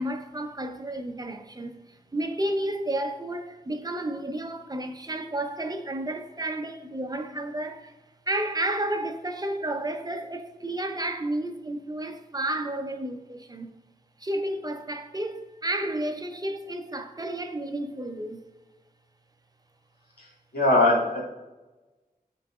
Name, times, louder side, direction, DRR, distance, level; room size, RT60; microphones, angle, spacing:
voice 1, 0.0-7.9 8.3-13.7 14.2-18.4, right 1 dB, 25° right, 0.6 m, -31 dB
voice 2, 20.5-21.2, left 2 dB, 85° left, 2.1 m, -20 dB
11.5 x 3.9 x 2.4 m
wide cardioid pair, 90°, 16 cm